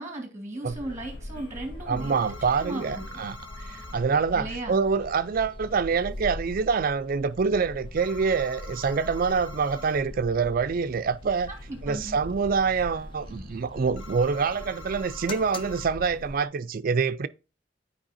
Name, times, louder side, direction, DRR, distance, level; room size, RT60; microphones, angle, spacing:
voice 1, 0.0-2.1 2.6-3.0 4.3-4.8 11.5-12.2, right 1 dB, 15° right, 1.6 m, -36 dB
sound 1, 0.5-15.9, equal, 60° left, 1.6 m, -54 dB
sound 2, 0.7-16.5, left 1 dB, 25° left, 0.4 m, -41 dB
voice 2, 1.9-3.4 3.7-11.5 11.8-17.3, right 5 dB, 50° right, 0.4 m, -26 dB
sound 3, 2.0-4.0 8.0-10.0 14.0-15.9, left 3 dB, 80° left, 1.2 m, -46 dB
8.8 x 4.7 x 2.6 m
head